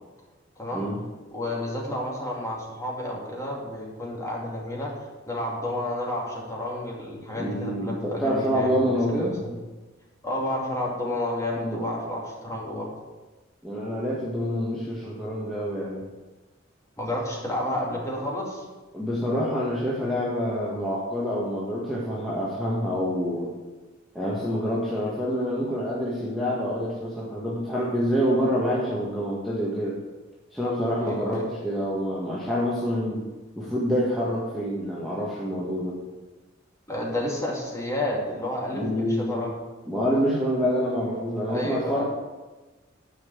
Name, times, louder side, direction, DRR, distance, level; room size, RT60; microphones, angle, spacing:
voice 1, 0.6-0.9 1.3-4.9 5.3-8.8 9.1-9.6 10.2-12.9 17.0-18.6 31.1-31.4 36.9-39.5 41.5-42.0, left 1 dB, 15° left, -3 dB, 2.5 m, -30 dB
voice 2, 7.3-9.4 11.6-11.8 13.6-16.0 18.9-23.5 24.1-30.0 30.5-33.2 33.5-36.0 38.7-39.4 39.9-42.0, equal, ahead, -7 dB, 1.6 m, -27 dB
9.9 x 5.9 x 7.7 m, 1.2 s
head